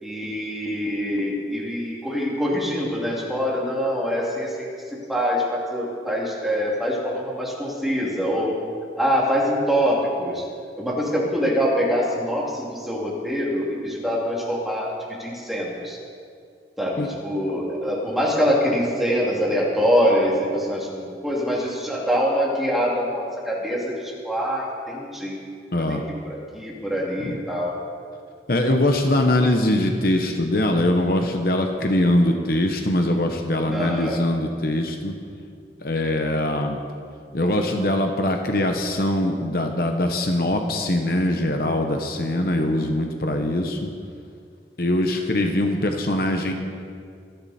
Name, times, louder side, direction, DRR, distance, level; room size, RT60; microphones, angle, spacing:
voice 1, 0.0-4.7 5.1-8.6 9.0-10.4 10.8-14.9 15.2-16.0 16.8-25.4 25.9-26.0 26.2-27.7 33.7-34.2, equal, ahead, -4 dB, 2.9 m, -24 dB
voice 2, 25.7-26.0 27.2-27.4 28.5-35.2 35.8-36.8 37.3-43.9 44.8-46.5, left 1 dB, 55° left, 4 dB, 1.1 m, -22 dB
25.5 x 10.5 x 4.4 m, 2.3 s
head